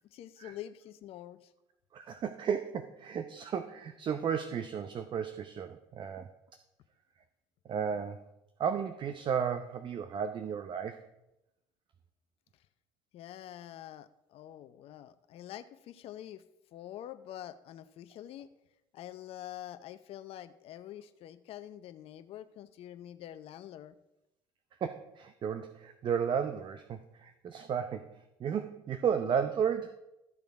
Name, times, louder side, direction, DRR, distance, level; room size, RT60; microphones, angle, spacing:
voice 1, 0.0-1.5 13.1-16.4 16.7-18.5 18.9-23.9, left 12 dB, 60° left, 11 dB, 0.7 m, -46 dB
voice 2, 1.9-6.3 7.7-8.2 8.6-11.0 24.8-30.0, right 7 dB, 45° right, 9 dB, 0.7 m, -33 dB
13.5 x 6.9 x 4.7 m, 0.90 s
hypercardioid pair, 70°, 11 cm